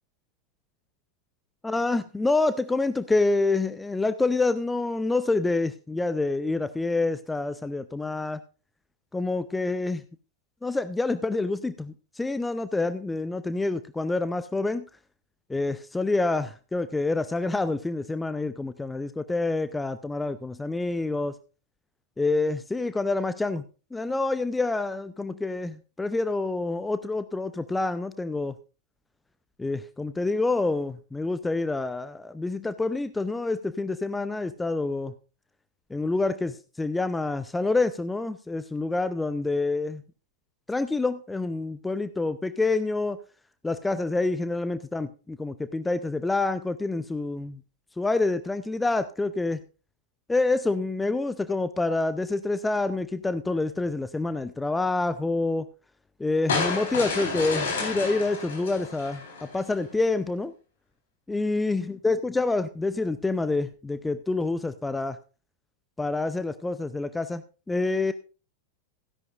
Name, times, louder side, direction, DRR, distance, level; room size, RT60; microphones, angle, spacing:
voice 1, 1.6-8.4 9.1-10.0 10.6-14.8 15.5-21.3 22.2-23.6 23.9-28.6 29.6-35.1 35.9-40.0 40.7-43.2 43.6-47.6 48.0-49.6 50.3-55.7 56.2-60.5 61.3-65.2 66.0-67.4 67.7-68.1, left 3 dB, 10° left, 13 dB, 0.6 m, -27 dB
sound 1, 56.5-59.7, left 4 dB, 60° left, 4.2 m, -30 dB
16.0 x 10.5 x 2.5 m, 0.34 s
figure-of-eight pair, 90°, 0 cm